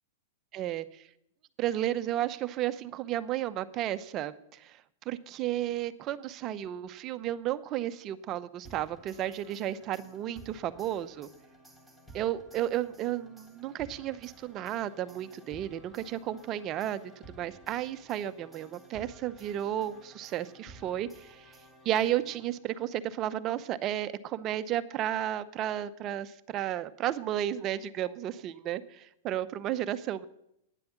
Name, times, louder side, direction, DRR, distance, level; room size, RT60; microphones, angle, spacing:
voice 1, 0.5-1.1 1.6-11.3 12.1-17.0 17.3-21.5 21.8-30.2, right 12 dB, 35° right, 13 dB, 0.7 m, -33 dB
sound 1, 8.6-22.8, right 1 dB, ahead, 1.9 m, -54 dB
10.0 x 7.7 x 8.6 m, 0.79 s
hypercardioid pair, 125°, 0 cm